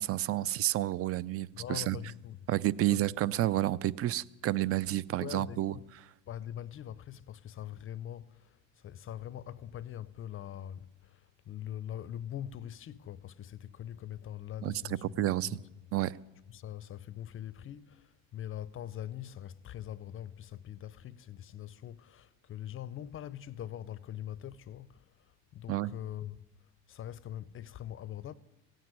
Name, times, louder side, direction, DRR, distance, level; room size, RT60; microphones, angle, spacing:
voice 1, 0.0-2.0 2.5-5.7 14.6-15.6 15.9-16.2 25.7-25.9, right 14 dB, 35° right, 0.5 m, -30 dB
voice 2, 1.5-2.4 2.9-3.1 5.2-5.8 6.3-15.7 16.5-26.5 26.9-28.3, left 11 dB, 30° left, 0.6 m, -43 dB
16.0 x 9.1 x 9.7 m
supercardioid pair, 100°, 40 cm